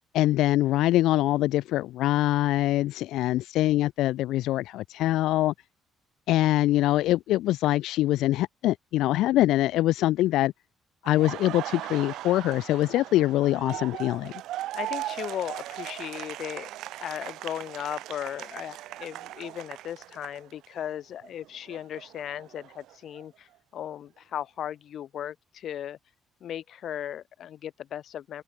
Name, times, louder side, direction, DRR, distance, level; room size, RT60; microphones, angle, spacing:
voice 1, 0.1-5.5 6.3-10.5 11.0-14.3, left 15 dB, 80° left, 0.4 m, -24 dB
Laughter, 11.0-20.9 21.2-23.2, right 15 dB, 80° right, 1.3 m, -39 dB
voice 2, 14.7-16.7 17.0-26.0 26.4-28.4, left 10 dB, 50° left, 0.9 m, -36 dB
cardioid pair, 170°, 0 cm